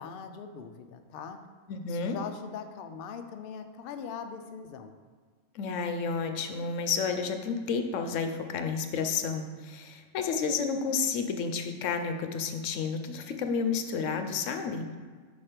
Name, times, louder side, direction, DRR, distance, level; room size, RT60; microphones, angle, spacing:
voice 1, 0.0-1.4 1.9-4.9, left 6 dB, 60° left, 6 dB, 0.6 m, -41 dB
voice 2, 1.7-2.2 5.5-15.0, left 5 dB, 80° left, 6 dB, 1.0 m, -31 dB
5.8 x 4.4 x 4.9 m, 1.5 s
omnidirectional pair, 1.3 m